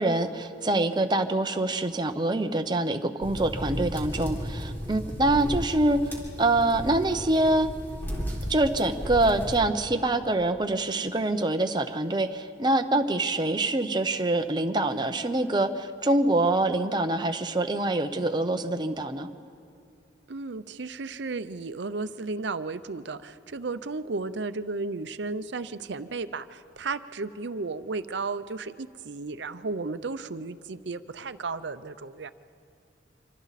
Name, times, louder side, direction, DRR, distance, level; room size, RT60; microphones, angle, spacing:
voice 1, 0.0-7.7 8.5-19.3, right 2 dB, 25° right, 7 dB, 0.8 m, -25 dB
sound 1, 3.2-9.6, equal, 10° left, 3.8 m, -34 dB
voice 2, 20.3-32.3, right 3 dB, 70° right, 13 dB, 0.7 m, -34 dB
26.0 x 25.0 x 4.2 m, 2.5 s
head